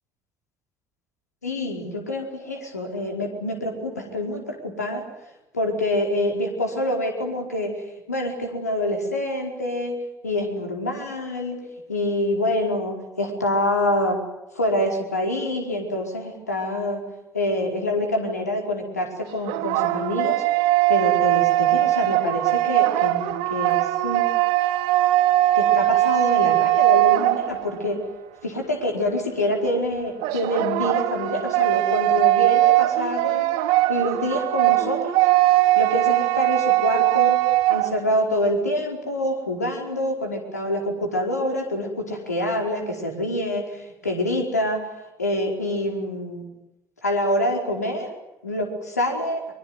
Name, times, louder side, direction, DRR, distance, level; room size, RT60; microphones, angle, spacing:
voice 1, 1.4-5.0 5.5-9.9 10.2-11.6 11.9-14.2 14.5-17.0 17.3-20.4 20.9-24.3 25.6-28.0 28.4-33.4 33.9-35.3 35.8-37.4 37.7-44.8 45.2-46.4 47.0-48.2 48.4-49.4, left 1 dB, 90° left, 2 dB, 4.7 m, -26 dB
sound 1, 19.2-27.9 30.2-38.0, right 16 dB, 65° right, 1.5 m, -20 dB
24.0 x 22.5 x 9.6 m, 0.91 s
figure-of-eight pair, 55°, 8 cm